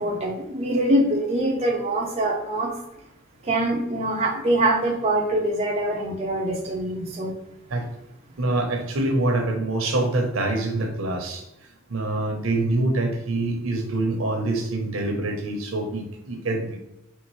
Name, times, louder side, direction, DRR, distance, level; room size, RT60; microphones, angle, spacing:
voice 1, 0.0-2.7 3.4-7.3, right 1 dB, 30° right, -1 dB, 0.6 m, -24 dB
voice 2, 8.4-11.4 11.9-16.8, right 2 dB, 85° right, 3 dB, 0.9 m, -25 dB
4.5 x 3.3 x 3.2 m, 0.89 s
head